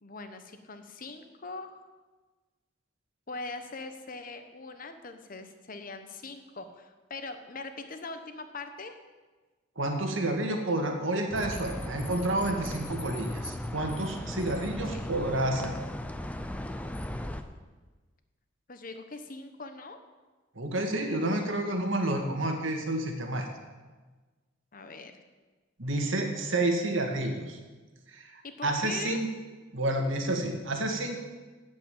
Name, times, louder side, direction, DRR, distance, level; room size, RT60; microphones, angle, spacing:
voice 1, 0.0-1.8 3.3-8.9 14.9-15.1 18.7-20.0 24.7-25.2 28.4-29.2, left 3 dB, 45° left, 8 dB, 1.0 m, -41 dB
voice 2, 9.8-15.8 20.6-23.5 25.8-27.6 28.1-28.3 28.6-29.3 29.7-31.2, right 1 dB, 80° right, 4 dB, 1.8 m, -29 dB
sound 1, 11.3-17.4, left 1 dB, 5° left, 0.6 m, -37 dB
8.6 x 7.9 x 8.9 m, 1.3 s
head